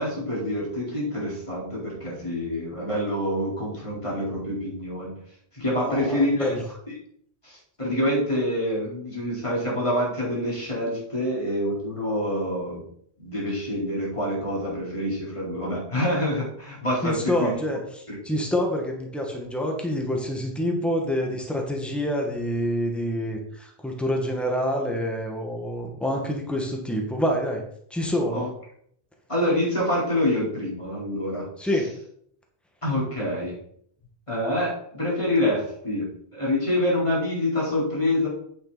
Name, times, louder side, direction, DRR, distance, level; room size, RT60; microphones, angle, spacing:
voice 1, 0.0-5.1 5.5-6.5 7.4-12.8 13.2-17.5 18.1-18.2 28.3-28.5 29.3-31.5 32.8-33.5 34.3-38.3, left 1 dB, 30° left, -6 dB, 4.4 m, -26 dB
voice 2, 5.7-6.6 17.0-17.8 18.2-27.6 27.9-28.4 31.6-32.0, equal, ahead, 1 dB, 1.7 m, -27 dB
9.1 x 7.9 x 4.1 m, 0.66 s
omnidirectional pair, 1.1 m